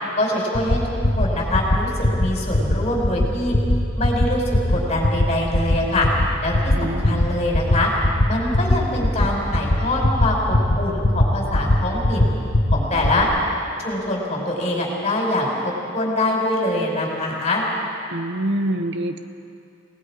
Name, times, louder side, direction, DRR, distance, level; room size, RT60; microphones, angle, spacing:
voice 1, 0.2-0.8 1.2-3.6 4.0-4.4 4.7-6.1 6.4-7.9 8.3-12.3 12.7-13.3 13.8-17.6, left 1 dB, 35° left, -2 dB, 5.2 m, -24 dB
sound 1, 0.5-0.8 1.0-1.3 1.5-1.8 2.0-2.3 2.5-2.8 3.0-3.3 3.5-3.8 4.0-4.3 4.5-4.8 5.0-5.2 5.5-5.8 6.0-6.3 6.5-6.8 7.0-7.3 7.5-7.8 8.0-8.3 8.5-8.8 9.0-9.3 9.5-9.8 10.0-10.3 10.5-10.8 11.0-11.3 11.5-11.7 12.0-12.2 12.5-12.8 13.0-13.2, left 1 dB, 50° left, 1.5 m, -18 dB
voice 2, 6.8-7.2 18.1-19.2, right 1 dB, 60° right, 9 dB, 0.9 m, -25 dB
28.5 x 18.5 x 5.0 m, 2.5 s
head